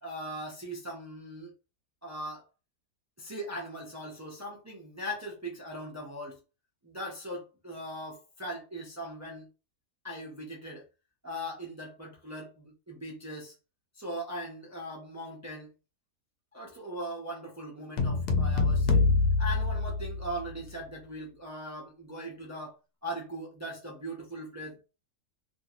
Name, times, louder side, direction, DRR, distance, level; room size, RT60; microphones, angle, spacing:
voice 1, 0.0-1.5 2.0-2.5 3.2-6.4 6.8-9.5 10.0-10.8 11.2-13.5 14.0-15.7 16.5-19.0 19.4-24.8, equal, 20° right, 0.4 m, -40 dB
sound 1, 18.0-20.5, left 3 dB, 85° left, 1.2 m, -25 dB
2.9 x 2.6 x 2.9 m
omnidirectional pair, 1.6 m